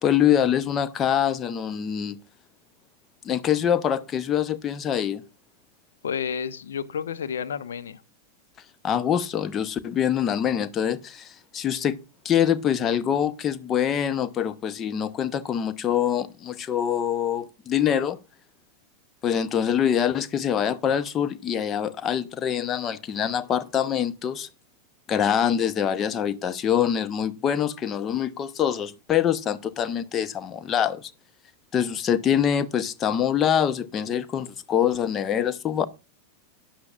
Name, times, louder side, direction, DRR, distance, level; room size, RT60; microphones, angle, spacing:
voice 1, 0.0-2.2 3.2-5.2 8.8-12.0 12.2-18.2 19.2-24.5 25.1-31.1 31.7-35.9, left 9 dB, 25° left, 0.8 m, -24 dB
voice 2, 6.0-8.0, left 7 dB, 65° left, 0.9 m, -31 dB
13.0 x 10.5 x 2.4 m
figure-of-eight pair, 90°, 0 cm